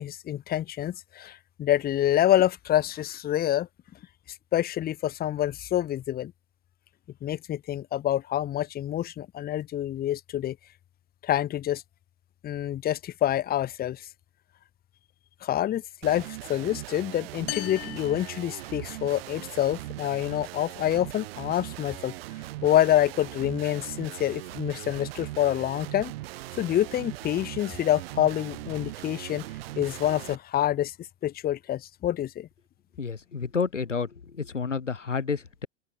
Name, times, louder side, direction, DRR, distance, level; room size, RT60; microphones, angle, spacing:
voice 1, 0.0-3.7 4.5-6.3 7.2-10.6 11.2-11.8 12.4-14.0 15.4-22.1 22.6-26.1 26.5-29.5 29.8-30.9 31.2-32.5, left 12 dB, 25° left, 1.3 m, -27 dB
sound 1, 16.0-30.4, right 18 dB, 55° right, 1.7 m, -40 dB
sound 2, 17.5-19.2, left 30 dB, 40° left, 1.8 m, -39 dB
voice 2, 33.0-35.7, left 5 dB, 85° left, 1.0 m, -30 dB
open air
figure-of-eight pair, 85°, 36 cm